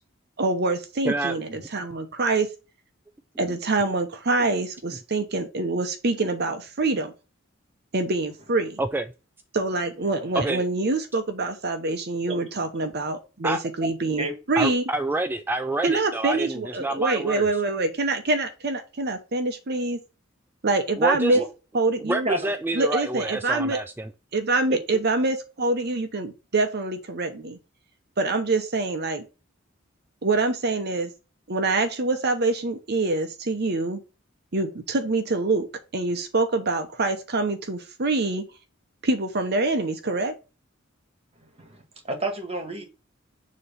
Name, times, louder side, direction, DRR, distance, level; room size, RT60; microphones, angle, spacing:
voice 1, 0.4-2.5 3.4-7.1 7.9-8.8 9.5-14.8 15.8-20.0 20.6-21.4 21.7-22.3 22.7-23.8 24.3-27.6 28.2-29.2 30.2-31.1 31.5-34.0 34.5-35.7 35.9-38.4 39.0-40.3, right 3 dB, 55° right, 0.9 m, -25 dB
voice 2, 1.0-1.4 8.8-9.0 10.3-10.7 13.4-13.6 14.6-17.5 21.0-21.4 22.0-24.1, right 2 dB, 10° right, 0.3 m, -27 dB
voice 3, 42.0-42.9, right 2 dB, 30° right, 1.7 m, -29 dB
6.9 x 3.1 x 5.4 m
head